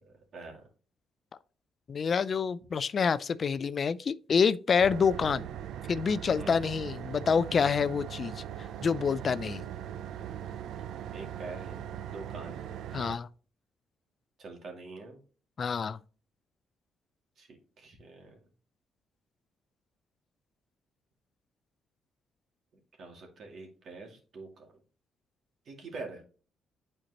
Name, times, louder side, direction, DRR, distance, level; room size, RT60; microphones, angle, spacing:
voice 1, 0.0-0.7 6.4-6.7 11.1-12.8 14.4-15.2 17.4-18.4 23.0-24.7 25.7-26.2, right 3 dB, 60° right, 2.2 m, -45 dB
voice 2, 1.9-5.5 5.9-8.4 8.8-9.6 12.9-13.3 15.6-16.0, left 6 dB, 45° left, 0.3 m, -27 dB
sound 1, 4.8-13.2, right 10 dB, 80° right, 0.4 m, -40 dB
8.9 x 4.5 x 2.9 m
cardioid pair, 90°, 0 cm